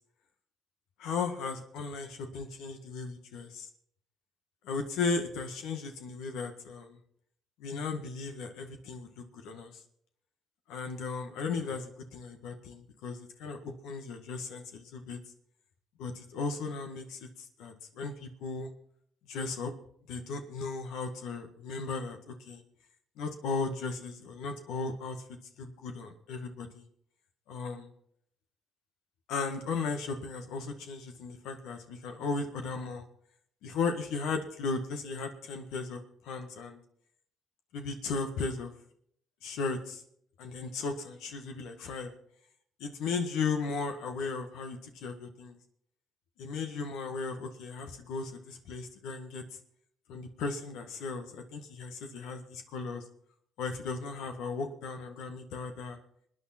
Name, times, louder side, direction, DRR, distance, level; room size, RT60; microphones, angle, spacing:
voice 1, 1.0-3.7 4.6-7.0 7.6-9.7 10.7-15.2 16.0-18.7 19.3-19.7 20.1-22.6 23.2-25.2 25.6-26.8 27.5-27.9 29.3-33.0 33.6-36.8 37.7-38.7 39.4-40.0 40.4-42.1 42.8-45.6 46.4-49.4 50.1-53.0 53.6-56.0, left 4 dB, 80° left, 6 dB, 1.7 m, -36 dB
26.0 x 9.5 x 4.3 m, 0.68 s
supercardioid pair, 70°, 0 cm